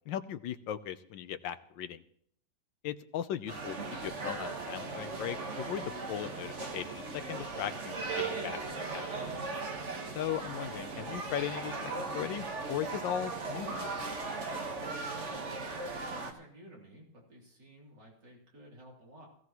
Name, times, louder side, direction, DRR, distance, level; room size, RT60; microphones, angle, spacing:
voice 1, 0.1-2.0 2.8-9.1 10.1-13.9, left 10 dB, 80° left, 11 dB, 1.5 m, -38 dB
sound 1, 3.5-16.3, right 3 dB, 40° right, 1.6 m, -38 dB
voice 2, 15.2-19.3, right 1 dB, 65° right, -3 dB, 3.9 m, -54 dB
17.5 x 15.5 x 3.1 m, 0.66 s
omnidirectional pair, 2.1 m